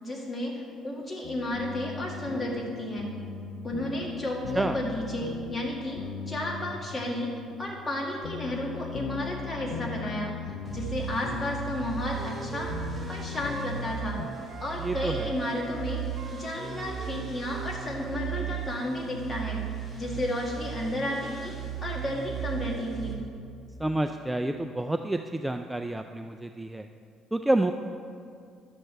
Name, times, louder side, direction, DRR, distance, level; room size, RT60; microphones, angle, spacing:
voice 1, 0.0-3.2 3.6-10.3 10.7-12.8 13.1-14.2 14.6-16.0 16.3-19.6 19.9-23.2, left 1 dB, 25° left, -2 dB, 2.0 m, -32 dB
sound 1, 1.2-14.3, left 6 dB, 80° left, 0.5 m, -39 dB
sound 2, 10.6-23.1, right 9 dB, 10° left, 2.0 m, -37 dB
Wind instrument woodwind instrument, 11.8-14.7 15.0-18.5, right 5 dB, 65° right, 0.8 m, -44 dB
voice 2, 14.8-15.3 23.8-26.9 27.3-27.7, right 1 dB, 10° right, 6 dB, 0.3 m, -28 dB
11.5 x 7.9 x 3.4 m, 2.3 s
cardioid pair, 95°, 0 cm